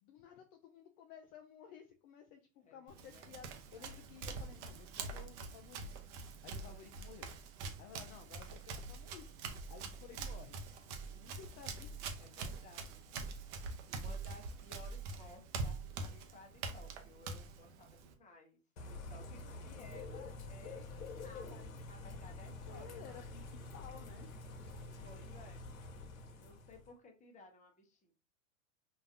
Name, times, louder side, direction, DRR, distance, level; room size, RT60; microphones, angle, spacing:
voice 1, 0.0-6.2 6.4-7.3 7.8-9.3 9.7-10.6 11.1-12.0 22.6-24.3, left 8 dB, 45° left, 5 dB, 0.5 m, -55 dB
Run, 2.9-18.1, right 4 dB, 55° right, 0.9 m, -45 dB
voice 2, 9.4-9.9 12.2-13.0 13.9-18.6 18.9-23.3 25.0-25.6 26.3-28.1, left 1 dB, 20° left, 2 dB, 0.9 m, -58 dB
Bird / Rain, 18.8-26.9, left 3 dB, 75° left, 1.0 m, -48 dB
3.9 x 2.6 x 2.6 m, 0.35 s
hypercardioid pair, 110°, 42 cm